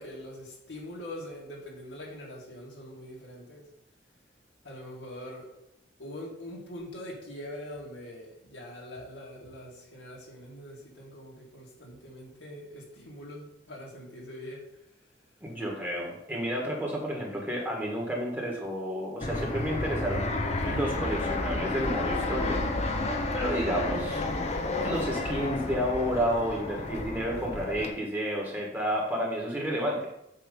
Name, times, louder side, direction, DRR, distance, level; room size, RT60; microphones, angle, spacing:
voice 1, 0.0-3.6 4.6-5.5 6.0-14.7, left 1 dB, 85° left, -3 dB, 2.0 m, -43 dB
voice 2, 15.4-20.3 20.6-23.0 23.3-24.2 24.8-30.1, equal, 10° right, -2 dB, 1.5 m, -31 dB
Fixed-wing aircraft airplane, 19.2-27.9, left 2 dB, 35° left, 0.7 m, -31 dB
7.7 x 3.0 x 5.3 m, 0.84 s
head